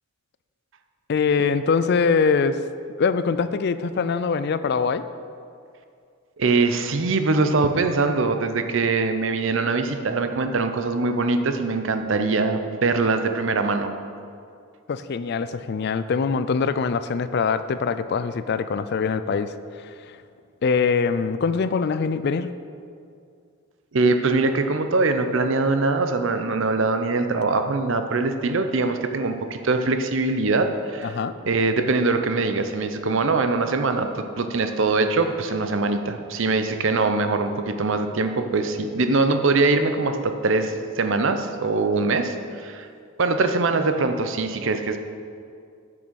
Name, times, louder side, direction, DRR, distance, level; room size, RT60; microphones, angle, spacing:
voice 1, 1.1-2.6 3.0-5.0 14.9-19.9 20.6-22.5 31.0-31.4, left 5 dB, 50° left, 12 dB, 0.3 m, -23 dB
voice 2, 6.4-13.9 23.9-31.2 31.5-42.9 43.2-45.0, right 3 dB, 60° right, 7 dB, 0.6 m, -22 dB
8.7 x 6.3 x 6.3 m, 2.4 s
head